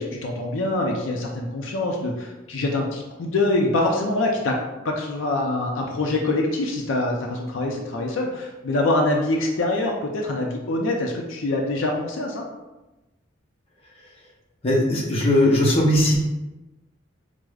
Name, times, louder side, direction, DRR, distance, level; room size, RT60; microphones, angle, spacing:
voice 1, 0.0-4.6 4.8-12.5, left 2 dB, 75° left, 0 dB, 0.4 m, -24 dB
voice 2, 14.6-16.3, left 1 dB, 30° left, -3 dB, 0.6 m, -19 dB
4.7 x 2.0 x 2.3 m, 1.1 s
head